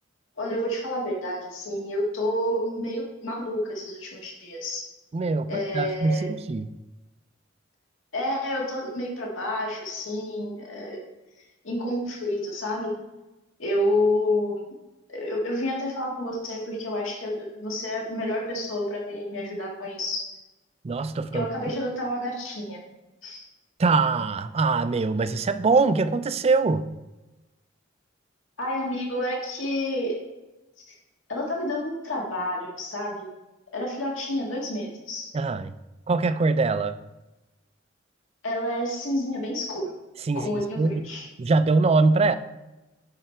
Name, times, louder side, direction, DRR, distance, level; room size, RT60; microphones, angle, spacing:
voice 1, 0.4-4.9 5.5-6.3 8.1-11.0 11.6-12.9 13.6-14.6 15.1-20.4 21.3-22.8 23.2-23.4 28.6-30.1 30.9-31.0 31.3-33.3 33.7-35.3 38.4-39.8 40.4-41.3, left 1 dB, 75° left, -2 dB, 1.9 m, -29 dB
voice 2, 5.1-6.7 20.8-21.5 23.8-26.9 35.3-35.7 36.1-37.0 40.3-41.1 41.4-42.4, right 3 dB, 30° right, 13 dB, 0.4 m, -23 dB
10.5 x 4.6 x 4.4 m, 1.0 s
head